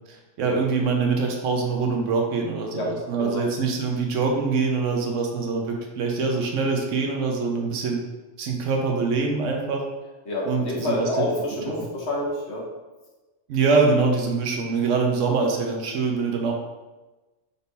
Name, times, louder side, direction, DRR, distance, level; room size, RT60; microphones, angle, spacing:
voice 1, 0.1-8.0 8.4-9.8 10.4-11.0 11.7-11.8 13.5-16.5, right 4 dB, 75° right, 1 dB, 1.0 m, -24 dB
voice 2, 3.2-3.5 10.3-12.7, left 1 dB, 60° left, -3 dB, 1.2 m, -27 dB
4.0 x 3.5 x 2.7 m, 1.2 s
omnidirectional pair, 1.3 m